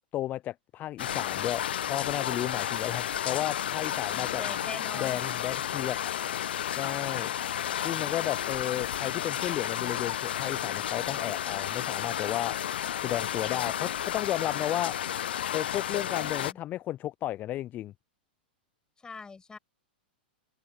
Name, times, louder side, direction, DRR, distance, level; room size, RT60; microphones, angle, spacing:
voice 1, 0.1-4.4 5.0-6.0 6.8-7.3 7.8-12.6 13.0-14.9 15.5-17.9, left 13 dB, 30° left, 0.4 m, -33 dB
sound 1, 1.0-16.5, left 10 dB, 75° left, 0.6 m, -32 dB
voice 2, 4.1-5.2 19.0-19.6, left 4 dB, 15° left, 6.3 m, -42 dB
hypercardioid pair, 110°, 6 cm